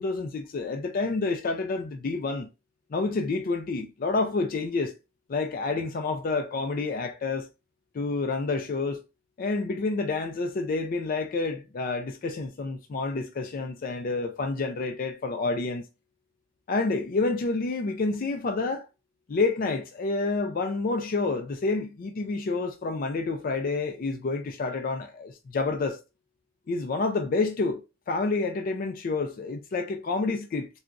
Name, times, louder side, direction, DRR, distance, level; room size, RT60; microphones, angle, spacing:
voice 1, 0.0-2.5 2.9-4.9 5.3-7.5 7.9-9.0 9.4-15.8 16.7-18.9 19.3-26.0 26.7-30.7, left 3 dB, 45° left, 0.4 m, -29 dB
3.9 x 2.3 x 2.4 m
head